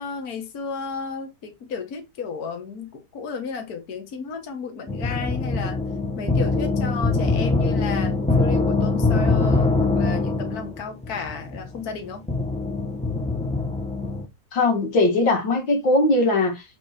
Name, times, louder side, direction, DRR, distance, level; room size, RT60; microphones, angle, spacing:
voice 1, 0.0-5.8 6.2-12.2, left 5 dB, 55° left, 1.8 m, -33 dB
sound 1, 4.9-14.3, left 3 dB, 5° left, 0.7 m, -23 dB
voice 2, 14.5-16.6, left 2 dB, 85° left, 2.7 m, -20 dB
8.8 x 3.8 x 4.3 m
omnidirectional pair, 2.0 m